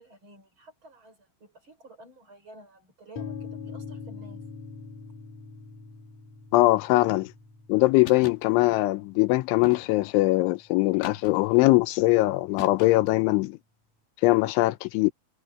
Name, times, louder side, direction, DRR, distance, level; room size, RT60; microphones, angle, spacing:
voice 1, 0.0-4.5, right 2 dB, 25° right, 5.9 m, -51 dB
sound 1, 3.2-11.0, left 5 dB, 40° left, 3.1 m, -43 dB
voice 2, 6.5-7.3 7.7-13.6 14.2-15.1, left 20 dB, 85° left, 3.1 m, -21 dB
sound 2, 8.0-8.5 9.6-10.2 11.0-11.6 12.6-13.2, left 9 dB, 65° left, 3.7 m, -41 dB
omnidirectional pair, 5.4 m